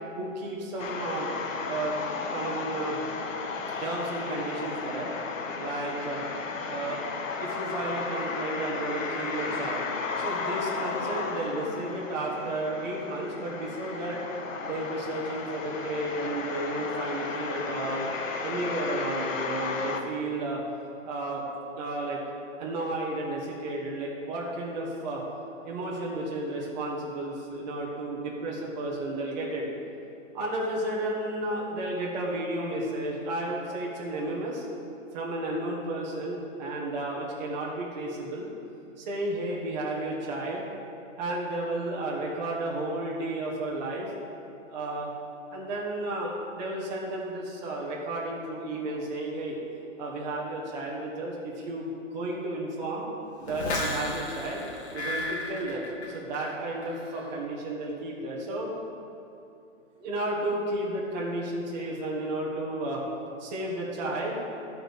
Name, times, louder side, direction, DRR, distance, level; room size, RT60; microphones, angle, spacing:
voice 1, 0.2-1.3 1.7-1.9 2.3-3.0 3.8-5.1 5.6-6.2 6.7-7.0 7.4-9.9 10.2-14.2 14.6-18.1 18.4-20.6 21.0-21.4 21.7-22.2 22.6-25.2 25.6-29.6 30.3-34.7 35.1-38.5 39.0-40.6 41.1-44.1 44.7-45.1 45.5-49.6 50.0-53.0 53.4-54.6 54.9-55.9 56.1-58.7 60.0-63.0 63.4-64.4, right 2 dB, 35° right, -4 dB, 1.7 m, -32 dB
sound 1, 0.8-20.0, left 4 dB, 80° left, 1.2 m, -34 dB
sound 2, 53.5-56.5 56.8-57.3, left 2 dB, 60° left, 2.1 m, -33 dB
12.5 x 5.2 x 6.5 m, 2.7 s
hypercardioid pair, 160°, 38 cm